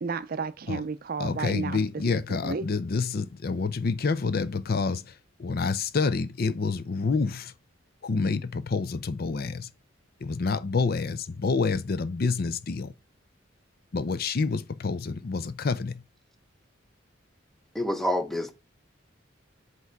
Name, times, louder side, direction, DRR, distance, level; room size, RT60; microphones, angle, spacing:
voice 1, 0.0-1.8 2.1-2.6, right 4 dB, 50° right, 0.5 m, -32 dB
voice 2, 1.2-5.1 5.4-7.5 8.0-9.7 10.2-12.9 13.9-16.0, left 4 dB, 50° left, 0.5 m, -28 dB
voice 3, 17.7-18.5, equal, ahead, 0.7 m, -27 dB
8.1 x 3.1 x 4.6 m
head